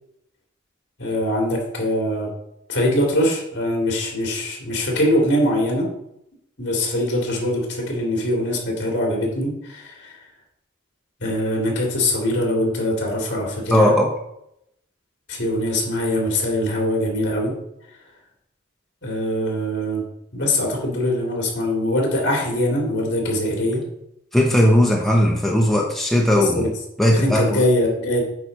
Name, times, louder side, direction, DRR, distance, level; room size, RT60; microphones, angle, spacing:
voice 1, 1.0-2.3 2.7-5.9 6.6-10.2 11.2-13.9 15.3-17.5 19.0-20.0 20.3-23.8 26.2-26.7 27.1-28.2, left 1 dB, 55° left, -1 dB, 2.4 m, -22 dB
voice 2, 13.7-14.1 24.3-26.7 27.0-27.6, left 1 dB, ahead, -1 dB, 0.6 m, -17 dB
8.9 x 4.8 x 4.0 m, 0.81 s
head